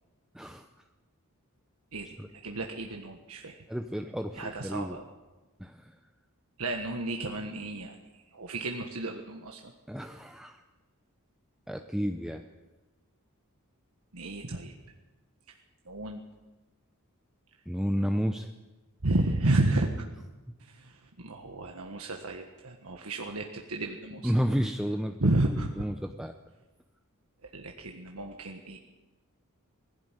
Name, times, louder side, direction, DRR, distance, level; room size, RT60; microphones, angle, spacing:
voice 1, 0.3-0.7 2.2-2.3 3.7-5.0 5.6-6.0 9.9-10.6 11.7-12.4 17.7-18.5 24.2-25.2 25.8-26.4, equal, 5° right, 6 dB, 0.7 m, -31 dB
voice 2, 1.9-3.6 4.3-5.0 6.6-8.0 8.3-9.7 14.1-14.7 15.9-16.2 19.0-19.9 20.6-24.3 25.2-25.7 27.5-28.8, right 2 dB, 75° right, 2 dB, 1.6 m, -31 dB
20.0 x 16.0 x 9.1 m, 1.1 s
head